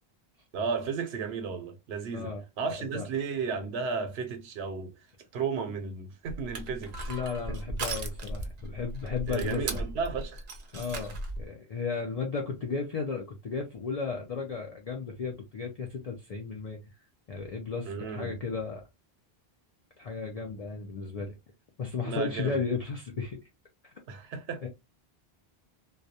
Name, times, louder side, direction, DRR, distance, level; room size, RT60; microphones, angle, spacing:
voice 1, 0.5-4.9 5.3-7.0 7.5-7.6 9.3-10.4 17.8-18.3 22.1-22.6 24.1-24.6, right 5 dB, 90° right, 0.9 m, -34 dB
voice 2, 2.1-2.4 2.9-3.1 7.1-9.8 10.7-18.8 20.0-21.3 21.8-23.4 23.8-23.9 24.6-24.7, left 4 dB, 55° left, 0.4 m, -34 dB
Crushing, 6.2-11.5, right 2 dB, 55° right, 0.5 m, -37 dB
2.3 x 2.1 x 2.7 m
omnidirectional pair, 1.0 m